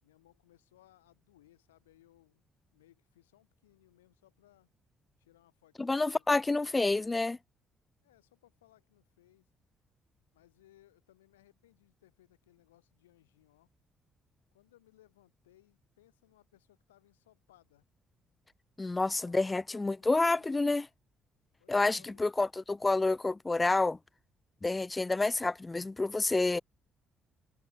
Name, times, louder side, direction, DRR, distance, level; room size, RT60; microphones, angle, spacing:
voice 1, 0.0-2.4 2.7-4.7 5.2-6.9 8.0-9.5 10.3-13.7 14.5-17.9 19.0-19.4 19.7-20.8 21.6-22.2, left 14 dB, 85° left, 2.8 m, -65 dB
voice 2, 5.8-7.4 18.8-20.9 21.7-24.0 24.6-26.6, left 3 dB, 25° left, 0.4 m, -29 dB
figure-of-eight pair, 45°, 0 cm